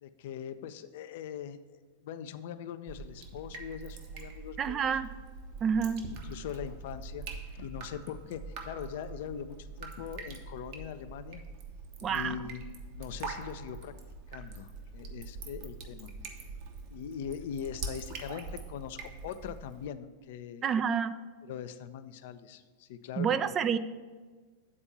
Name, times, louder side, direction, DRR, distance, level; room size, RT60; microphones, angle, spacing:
voice 1, 0.0-5.0 5.7-7.3 7.5-11.4 12.0-12.6 12.9-13.9 14.3-16.1 16.9-20.7 21.4-23.5, left 8 dB, 55° left, 11 dB, 0.4 m, -41 dB
Drip, 2.9-19.9, right 4 dB, 50° right, 1.0 m, -44 dB
voice 2, 4.6-5.1 5.6-6.1 12.0-12.4 20.6-21.2 23.2-23.8, right 7 dB, 25° right, 12 dB, 0.3 m, -28 dB
8.6 x 4.4 x 6.9 m, 1.4 s
figure-of-eight pair, 90°, 0 cm